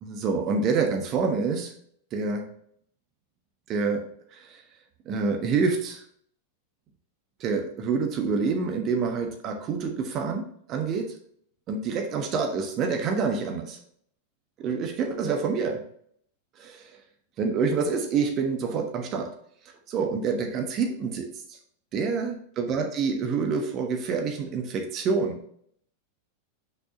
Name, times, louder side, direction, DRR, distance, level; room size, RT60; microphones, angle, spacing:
voice 1, 0.0-1.7 2.1-2.5 3.7-4.0 4.3-4.6 5.1-6.0 7.4-11.1 11.7-13.8 14.6-15.8 16.6-16.9 17.4-19.3 19.9-21.3 21.9-25.4, right 5 dB, 35° right, 3 dB, 1.2 m, -27 dB
6.1 x 5.8 x 2.8 m, 0.63 s
figure-of-eight pair, 90°, 0 cm